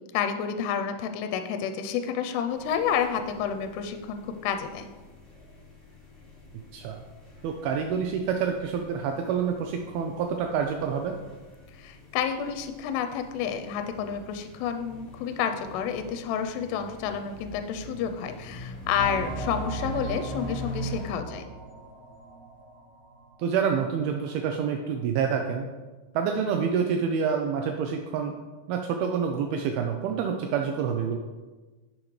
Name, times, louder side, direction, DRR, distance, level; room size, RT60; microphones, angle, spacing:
voice 1, 0.1-4.9 11.8-21.4, left 7 dB, 85° left, 8 dB, 2.6 m, -30 dB
sound 1, 2.5-21.1, equal, 20° left, 1.4 m, -44 dB
voice 2, 6.7-7.0 7.4-11.1 23.4-25.7 26.1-28.3 28.7-31.2, right 6 dB, 80° right, 4 dB, 2.3 m, -27 dB
sound 2, 19.0-23.3 23.6-23.7 24.2-24.3, right 3 dB, 50° right, 3.0 m, -38 dB
11.0 x 6.5 x 3.1 m, 1.3 s
omnidirectional pair, 4.8 m